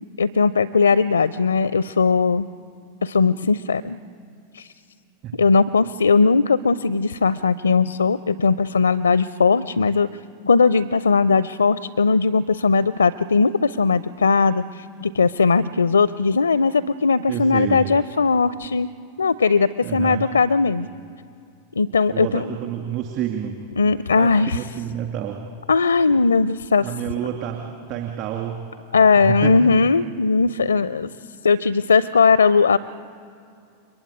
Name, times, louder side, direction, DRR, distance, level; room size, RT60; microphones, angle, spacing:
voice 1, 0.2-2.5 3.0-4.0 4.5-4.7 5.4-10.1 10.4-18.9 19.2-20.9 21.8-22.5 23.8-24.6 25.7-26.9 28.9-31.1 31.4-32.8, left 4 dB, 75° left, 18 dB, 0.5 m, -18 dB
voice 2, 17.3-17.9 19.8-20.3 22.1-23.6 24.1-25.5 26.8-28.6 29.2-29.5, right 10 dB, 40° right, 3 dB, 2.5 m, -29 dB
30.0 x 23.0 x 8.5 m, 2.5 s
figure-of-eight pair, 90°, 0 cm